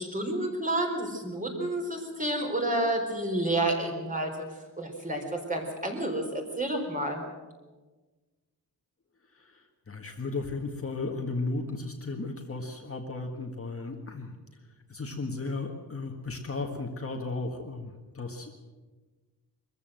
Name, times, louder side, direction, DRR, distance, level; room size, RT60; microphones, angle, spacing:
voice 1, 0.0-4.3 4.8-6.2 6.6-7.2, right 1 dB, 20° right, 1 dB, 4.1 m, -30 dB
voice 2, 9.9-14.3 14.9-18.7, left 3 dB, 35° left, 2 dB, 1.8 m, -35 dB
23.5 x 14.5 x 7.8 m, 1.3 s
wide cardioid pair, 160°, 39 cm